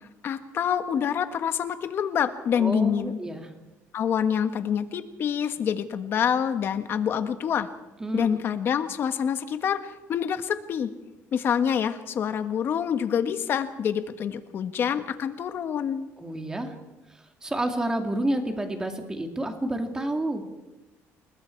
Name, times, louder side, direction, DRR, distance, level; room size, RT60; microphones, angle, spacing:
voice 1, 0.2-3.2 3.9-7.7 8.1-10.9 11.3-16.1, left 8 dB, 45° left, 9 dB, 1.4 m, -26 dB
voice 2, 2.5-3.5 8.0-8.3 16.2-16.7 17.4-20.4, right 1 dB, 10° right, 4 dB, 2.4 m, -29 dB
29.0 x 20.0 x 4.6 m, 1.0 s
cardioid pair, 155°, 5 cm